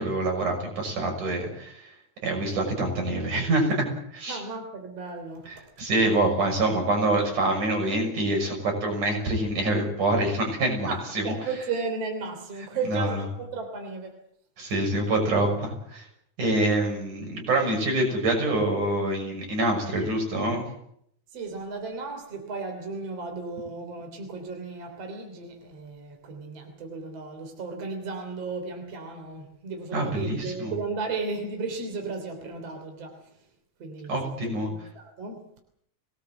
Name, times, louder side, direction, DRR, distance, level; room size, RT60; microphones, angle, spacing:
voice 1, 0.0-1.9 2.2-3.9 4.1-4.4 5.8-11.3 12.9-13.1 14.6-16.1 16.4-20.6 29.9-30.7 34.1-34.7, right 2 dB, 85° right, 2 dB, 8.0 m, -26 dB
voice 2, 4.3-5.5 10.9-14.2 21.3-33.5 33.8-35.5, right 4 dB, 55° right, 4 dB, 4.3 m, -35 dB
24.5 x 18.5 x 7.8 m, 0.71 s
omnidirectional pair, 3.5 m